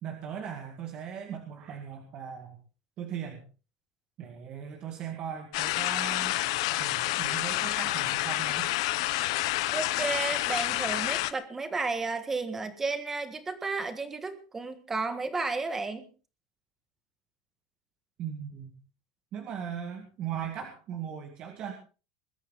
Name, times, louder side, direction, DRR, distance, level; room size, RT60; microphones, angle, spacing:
voice 1, 0.0-2.6 3.0-3.4 4.2-6.4 6.8-8.7 18.2-18.8 19.3-21.7, right 8 dB, 30° right, 3 dB, 2.1 m, -38 dB
sound 1, 5.5-11.3, left 18 dB, 70° left, 1.1 m, -29 dB
voice 2, 9.7-16.1, right 3 dB, 10° right, 10 dB, 1.6 m, -32 dB
21.0 x 13.0 x 4.1 m, 0.35 s
cardioid pair, 175°, 3 cm